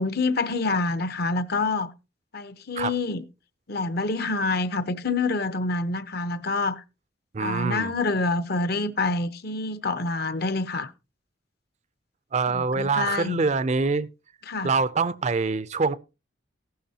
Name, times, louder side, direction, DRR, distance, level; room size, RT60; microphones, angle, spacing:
voice 1, 0.0-1.9 2.3-3.2 3.7-6.8 7.4-10.9 12.5-13.4 14.5-14.7, left 3 dB, 50° left, 0.8 m, -27 dB
voice 2, 7.3-7.9 12.3-14.1 14.6-15.9, right 4 dB, 35° right, 0.5 m, -24 dB
14.5 x 11.5 x 2.8 m
head